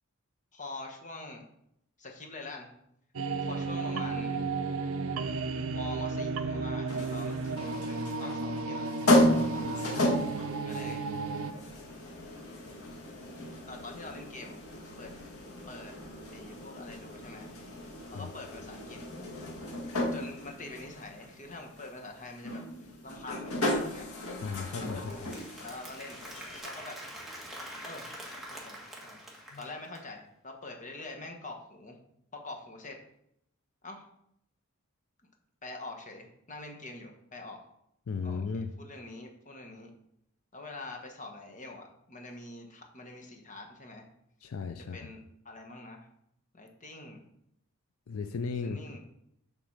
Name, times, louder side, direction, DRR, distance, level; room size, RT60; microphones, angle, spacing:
voice 1, 0.5-1.4 2.0-2.7 3.4-4.4 5.7-10.0 10.6-11.1 13.7-14.6 15.0-15.1 15.7-15.9 16.3-17.5 18.1-19.0 20.1-22.6 23.0-24.1 24.6-25.3 25.6-27.0 27.8-28.1 28.5-29.2 29.6-32.0 32.3-33.0 33.8-34.1 35.6-37.6 38.2-39.9 40.5-44.0 44.9-45.2 45.4-46.1 46.5-47.2 48.6-49.0, left 2 dB, 35° left, 3 dB, 1.3 m, -45 dB
sound 1, 3.1-11.5, right 4 dB, 70° right, 0.6 m, -33 dB
sound 2, 6.9-26.6, left 1 dB, 85° left, 1.8 m, -33 dB
Applause, 24.3-30.1, equal, ahead, 1.5 m, -45 dB
voice 2, 24.4-25.3 29.5-29.6 38.1-38.7 44.4-45.1 48.1-49.0, left 5 dB, 70° left, 8 dB, 0.5 m, -36 dB
7.1 x 4.0 x 6.4 m, 0.75 s
head